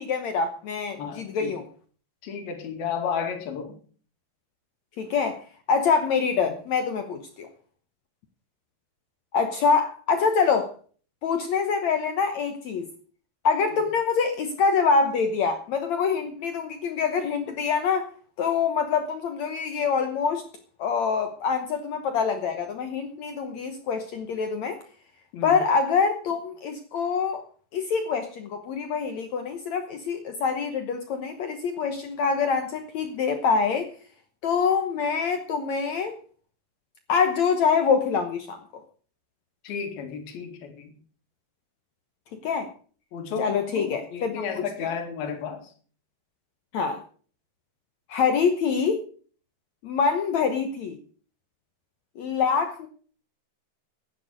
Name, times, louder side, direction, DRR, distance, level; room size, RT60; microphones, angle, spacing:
voice 1, 0.0-1.7 5.0-5.4 5.7-7.5 9.3-10.7 11.2-12.9 13.4-18.1 18.4-20.4 20.8-24.8 25.4-27.4 27.7-33.9 34.4-36.2 37.1-38.6 42.4-42.7 43.4-44.9 46.7-47.0 48.1-49.0 49.8-51.0 52.2-52.9, left 5 dB, 80° left, 7 dB, 1.6 m, -25 dB
voice 2, 1.0-1.5 2.2-3.8 25.3-25.6 39.6-40.9 43.1-45.7, left 6 dB, 60° left, 5 dB, 4.0 m, -33 dB
13.5 x 10.0 x 6.4 m, 0.43 s
omnidirectional pair, 5.0 m